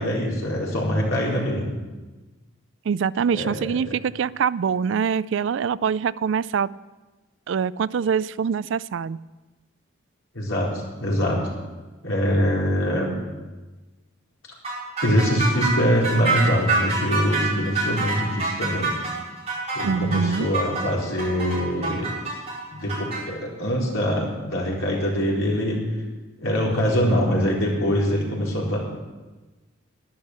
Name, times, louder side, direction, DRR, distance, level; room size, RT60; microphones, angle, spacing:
voice 1, 0.0-1.7 3.3-3.9 10.3-11.4 12.0-13.1 15.0-18.9 19.7-22.1 22.7-25.8 26.4-28.8, equal, 85° left, -3 dB, 4.3 m, -23 dB
voice 2, 2.9-6.7 7.5-9.2 19.8-20.5, right 6 dB, 65° right, 19 dB, 0.3 m, -24 dB
sound 1, 14.6-23.2, right 3 dB, 30° right, 5.4 m, -26 dB
12.0 x 10.5 x 7.4 m, 1.2 s
head